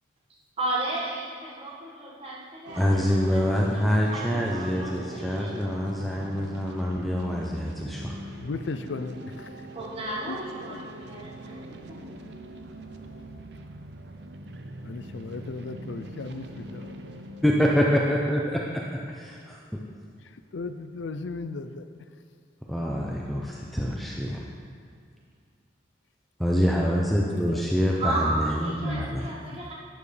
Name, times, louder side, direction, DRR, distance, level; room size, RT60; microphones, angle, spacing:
voice 1, 0.6-5.7 9.7-12.3 28.0-29.7, right 2 dB, 30° right, -4 dB, 1.6 m, -34 dB
sound 1, 2.7-19.0, right 1 dB, 65° right, 0.7 m, -42 dB
voice 2, 2.8-8.2 17.4-18.6 22.7-24.4 26.4-29.2, equal, ahead, -3 dB, 0.6 m, -25 dB
voice 3, 8.4-9.5 10.3-10.4 10.7-10.8 14.8-16.9 20.2-22.1 27.2-27.7 28.7-29.1 29.5-29.7, left 3 dB, 75° left, 10 dB, 0.5 m, -36 dB
12.0 x 9.2 x 3.3 m, 2.3 s
head